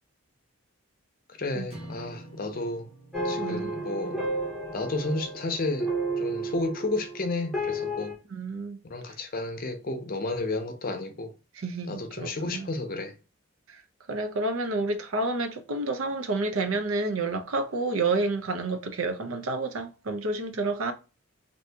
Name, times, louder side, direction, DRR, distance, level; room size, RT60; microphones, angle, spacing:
voice 1, 1.4-2.9 3.2-4.3 4.7-8.1 8.8-11.4 11.9-13.2, left 2 dB, 40° left, 0.5 m, -32 dB
sound 1, 1.7-6.0, right 1 dB, 30° right, 1.0 m, -49 dB
sound 2, 3.1-8.1, right 1 dB, ahead, 0.7 m, -32 dB
voice 2, 3.4-3.7 8.3-8.8 11.6-12.7 13.7-13.8 14.1-20.9, right 3 dB, 70° right, 0.6 m, -29 dB
2.7 x 2.7 x 3.3 m
head